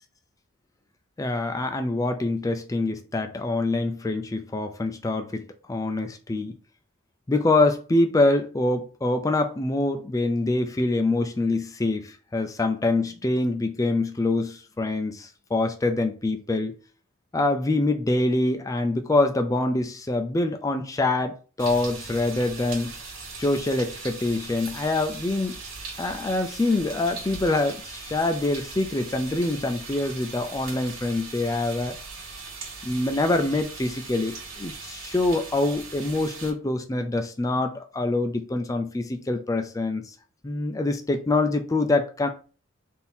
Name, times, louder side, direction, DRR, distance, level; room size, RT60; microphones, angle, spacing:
voice 1, 1.2-6.5 7.3-16.7 17.3-22.9 23.4-25.6 26.0-32.0 32.8-40.1 40.4-42.3, left 2 dB, 15° left, 0.4 m, -25 dB
sound 1, 21.6-36.5, right 4 dB, 75° right, 1.6 m, -40 dB
3.6 x 2.7 x 4.3 m
head